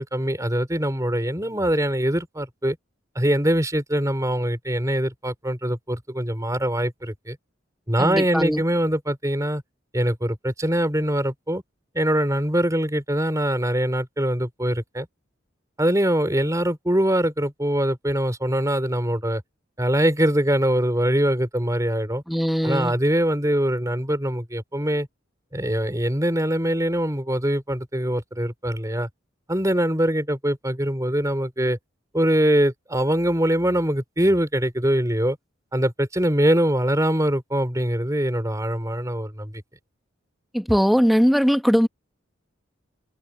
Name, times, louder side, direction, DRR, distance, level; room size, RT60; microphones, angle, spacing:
voice 1, 0.0-2.8 3.1-7.4 7.9-9.6 9.9-11.6 11.9-15.1 15.8-19.4 19.8-22.2 22.6-25.1 25.5-29.1 29.5-31.8 32.1-35.4 35.7-39.5, right 1 dB, 15° right, 4.7 m, -23 dB
voice 2, 8.0-8.6 22.3-22.9 40.5-41.9, equal, ahead, 1.6 m, -20 dB
head